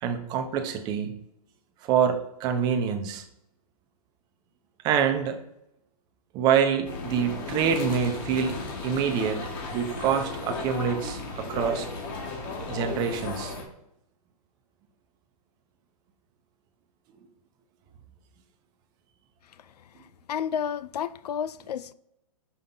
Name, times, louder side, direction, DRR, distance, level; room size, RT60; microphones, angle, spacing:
voice 1, 0.0-1.2 1.9-3.2 4.8-5.4 6.3-11.9 12.7-13.5, right 7 dB, 20° right, 0.7 m, -26 dB
sound 1, 6.9-13.6, left 3 dB, 35° left, 1.3 m, -35 dB
voice 2, 20.3-21.9, left 8 dB, 85° left, 0.5 m, -31 dB
5.5 x 5.5 x 3.9 m
hypercardioid pair, 155°, 20 cm